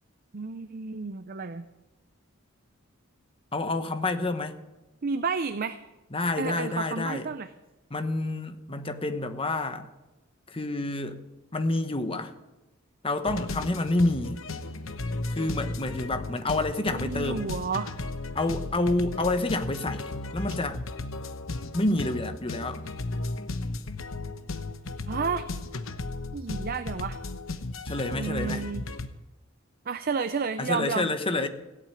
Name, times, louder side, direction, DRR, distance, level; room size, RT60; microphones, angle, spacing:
voice 1, 0.3-1.6 5.0-5.8 6.4-7.5 16.9-17.9 25.1-25.5 26.3-27.2 28.1-28.9 29.9-31.1, right 5 dB, 45° right, 10 dB, 0.5 m, -31 dB
voice 2, 3.5-4.6 6.1-7.3 7.9-9.9 10.5-11.2 11.5-12.3 13.0-14.4 15.3-17.5 18.3-20.8 21.6-22.8 27.8-28.6 30.6-31.5, left 2 dB, 25° left, 8 dB, 1.0 m, -28 dB
sound 1, 13.3-29.1, left 2 dB, 70° left, 1.0 m, -35 dB
16.5 x 8.5 x 8.6 m, 1.0 s
head